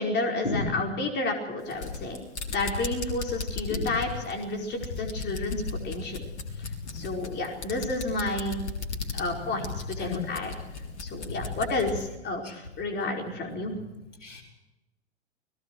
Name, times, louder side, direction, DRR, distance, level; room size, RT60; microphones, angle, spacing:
voice 1, 0.0-2.2 2.5-6.2 6.9-8.6 9.1-10.5 11.0-13.8, left 2 dB, 30° left, 1 dB, 4.9 m, -31 dB
sound 1, 1.6-12.0, left 4 dB, 70° left, 3.8 m, -36 dB
voice 2, 6.6-7.2 9.1-9.7 10.0-10.2 10.7-10.8 11.2-11.5 12.4-12.5 14.2-14.4, left 3 dB, 85° left, 0 dB, 4.8 m, -35 dB
29.0 x 19.5 x 4.7 m, 1.0 s
figure-of-eight pair, 95°, 35 cm